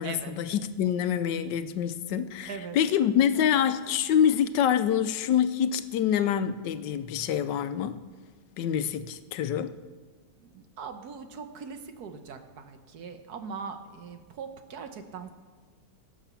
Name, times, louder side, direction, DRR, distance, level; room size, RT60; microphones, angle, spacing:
voice 1, 0.0-8.1 8.6-9.7, left 9 dB, 85° left, 1.3 m, -26 dB
voice 2, 10.4-15.3, right 5 dB, 65° right, 1.5 m, -40 dB
20.5 x 7.1 x 5.8 m
omnidirectional pair, 1.9 m